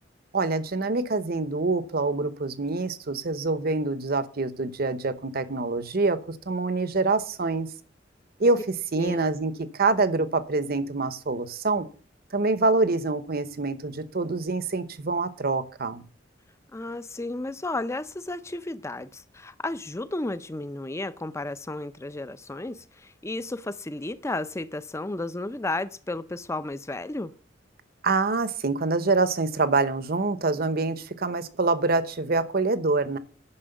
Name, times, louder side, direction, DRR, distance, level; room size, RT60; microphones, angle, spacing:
voice 1, 0.3-7.7 8.4-8.6 8.9-11.9 12.3-16.0 28.0-33.2, right 3 dB, 55° right, 0.9 m, -25 dB
voice 2, 9.0-9.3 16.7-27.3, left 2 dB, 15° left, 0.6 m, -33 dB
9.8 x 6.2 x 7.9 m
head